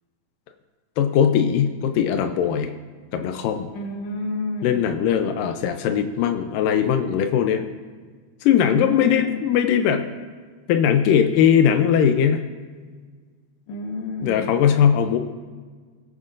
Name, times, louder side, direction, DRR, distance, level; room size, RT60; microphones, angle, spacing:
voice 1, 1.0-2.7 3.1-3.7 4.6-7.6 8.4-10.1 10.7-12.4 14.2-15.2, left 8 dB, 85° left, 7 dB, 2.3 m, -20 dB
voice 2, 3.7-4.9 8.6-9.4 13.7-14.5, left 2 dB, 60° left, 2 dB, 2.3 m, -30 dB
19.0 x 9.4 x 2.5 m, 1.5 s
omnidirectional pair, 3.8 m